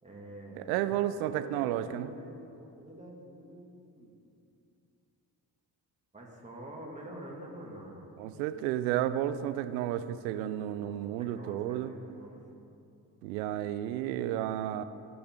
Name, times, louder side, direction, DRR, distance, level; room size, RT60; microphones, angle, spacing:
voice 1, 0.0-4.1 6.1-8.1 10.6-12.5, right 1 dB, 15° right, -3 dB, 2.5 m, -47 dB
voice 2, 0.6-2.1 8.2-11.9 13.2-14.8, right 12 dB, 80° right, 13 dB, 0.6 m, -32 dB
18.5 x 6.8 x 3.8 m, 2.6 s
hypercardioid pair, 40°, 49 cm